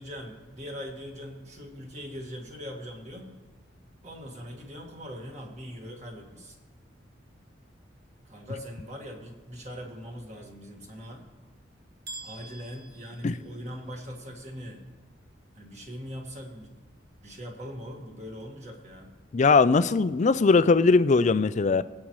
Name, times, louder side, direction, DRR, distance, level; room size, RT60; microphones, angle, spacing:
voice 1, 0.0-3.3 4.0-6.6 8.2-11.3 12.2-14.9 15.5-16.8 17.2-19.1, equal, 35° right, 1 dB, 1.9 m, -41 dB
sound 1, 12.1-14.0, right 3 dB, 55° right, 1.4 m, -45 dB
voice 2, 19.3-21.8, left 4 dB, 40° left, 14 dB, 0.4 m, -20 dB
23.5 x 8.6 x 3.1 m, 1.3 s
head